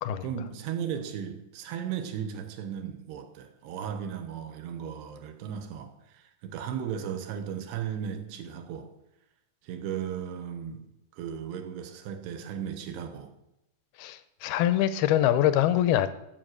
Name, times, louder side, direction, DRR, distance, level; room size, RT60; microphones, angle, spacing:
voice 1, 0.2-8.9 9.6-10.8 11.1-13.3, right 8 dB, 85° right, 6 dB, 3.2 m, -36 dB
voice 2, 14.0-16.1, left 12 dB, 80° left, 13 dB, 2.3 m, -24 dB
12.5 x 7.5 x 6.4 m, 0.86 s
omnidirectional pair, 4.7 m